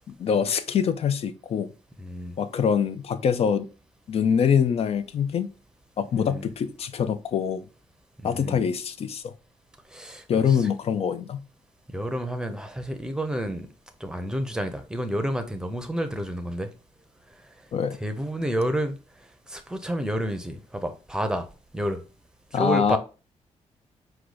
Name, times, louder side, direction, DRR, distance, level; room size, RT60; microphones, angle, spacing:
voice 1, 0.1-1.7 2.4-3.7 4.1-5.5 6.0-7.6 8.2-9.3 10.3-11.4 17.7-18.0 22.5-23.0, left 7 dB, 60° left, 0.5 m, -24 dB
voice 2, 2.0-2.3 6.1-6.5 8.2-8.6 9.9-10.7 11.9-13.7 14.0-16.7 17.9-19.0 19.5-21.5 21.7-22.0 22.5-23.0, equal, 5° right, 0.7 m, -30 dB
4.8 x 2.3 x 3.9 m
cardioid pair, 100°, 12 cm